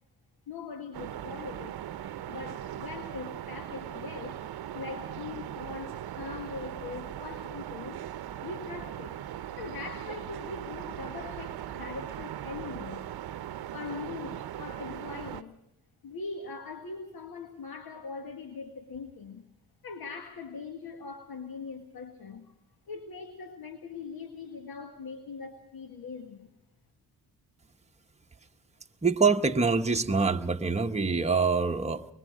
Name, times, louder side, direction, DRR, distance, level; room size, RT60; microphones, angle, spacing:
voice 1, 0.5-1.8 2.3-8.0 8.4-9.2 9.6-13.1 13.7-15.6 16.0-19.5 19.8-22.5 22.9-26.5, left 4 dB, 65° left, 6 dB, 1.8 m, -41 dB
sound 1, 0.9-15.4, right 11 dB, 70° right, 0.8 m, -39 dB
voice 2, 29.0-32.1, right 4 dB, 15° right, 4 dB, 1.0 m, -25 dB
24.0 x 22.0 x 5.1 m, 0.83 s
cardioid pair, 80°, 39 cm